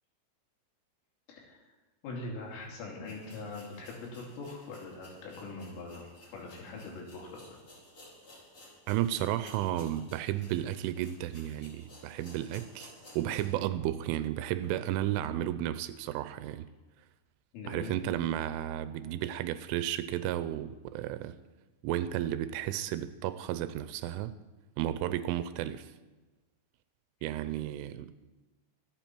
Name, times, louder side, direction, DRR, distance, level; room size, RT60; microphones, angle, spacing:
voice 1, 2.0-7.4 17.5-18.0, left 3 dB, 75° left, 5.3 m, -42 dB
sound 1, 2.5-2.6 3.0-13.6 14.0-14.1 14.6-14.7, left 1 dB, 25° left, 4.9 m, -55 dB
voice 2, 8.9-16.7 17.7-21.4 21.8-24.3 24.8-25.9 27.2-28.1, right 12 dB, 85° right, 3.0 m, -33 dB
25.5 x 8.6 x 4.5 m
omnidirectional pair, 5.8 m